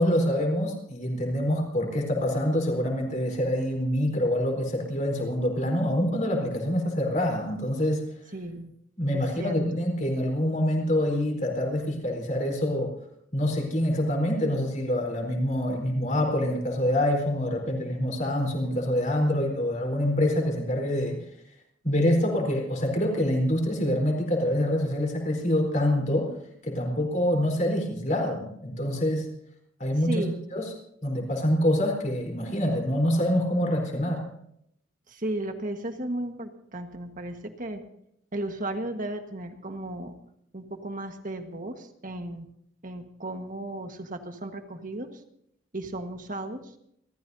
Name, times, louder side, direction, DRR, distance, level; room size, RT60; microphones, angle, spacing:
voice 1, 0.0-8.0 9.0-12.9 13.3-21.2 21.8-26.4 26.6-29.3 29.8-30.7 31.0-34.3, left 1 dB, 40° left, 2 dB, 4.2 m, -26 dB
voice 2, 8.3-8.7 9.1-9.5 30.1-30.4 35.1-37.8 38.3-40.1 40.5-42.5 42.8-45.2 45.7-46.7, right 1 dB, 40° right, 6 dB, 1.5 m, -35 dB
29.5 x 14.0 x 2.8 m, 0.73 s
head